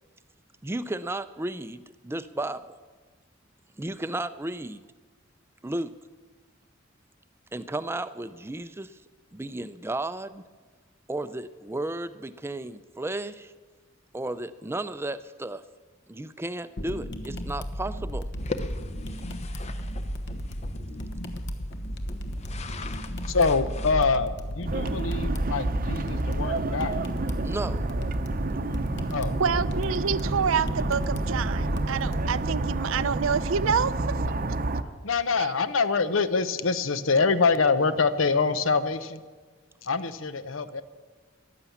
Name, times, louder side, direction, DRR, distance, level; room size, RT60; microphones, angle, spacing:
voice 1, 0.6-2.6 3.8-4.8 5.6-5.9 7.5-8.9 9.3-10.4 11.1-13.5 14.1-15.6 16.1-18.3 27.4-27.9, right 2 dB, 10° right, 13 dB, 0.5 m, -33 dB
sound 1, 16.8-32.2, equal, 60° left, 1.2 m, -34 dB
sound 2, 18.4-24.0, left 2 dB, 35° left, 0.7 m, -39 dB
voice 2, 23.2-27.0 29.1-29.4 35.0-39.2 39.8-40.8, left 4 dB, 80° left, 12 dB, 0.8 m, -25 dB
sound 3, 24.7-34.8, right 2 dB, 45° right, 0.7 m, -29 dB
voice 3, 29.4-33.9 35.4-35.5, right 6 dB, 85° right, 17 dB, 0.5 m, -27 dB
14.5 x 11.0 x 7.1 m, 1.4 s
head